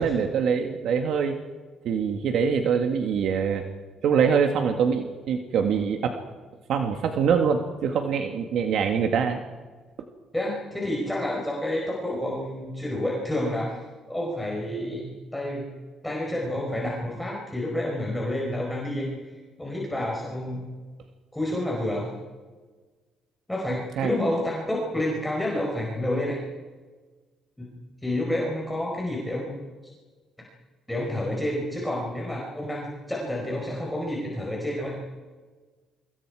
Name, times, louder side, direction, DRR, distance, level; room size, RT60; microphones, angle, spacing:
voice 1, 0.0-1.4 1.8-3.6 4.0-6.2 6.7-9.4 23.7-24.1, right 6 dB, 65° right, 4 dB, 1.8 m, -24 dB
voice 2, 10.3-13.8 14.1-15.6 16.0-19.1 19.6-20.7 21.3-22.1 23.5-26.4 27.6-27.7 28.0-29.7 30.9-34.9, left 1 dB, 5° left, -2 dB, 4.7 m, -29 dB
29.0 x 25.0 x 4.9 m, 1.4 s
cardioid pair, 135°, 0 cm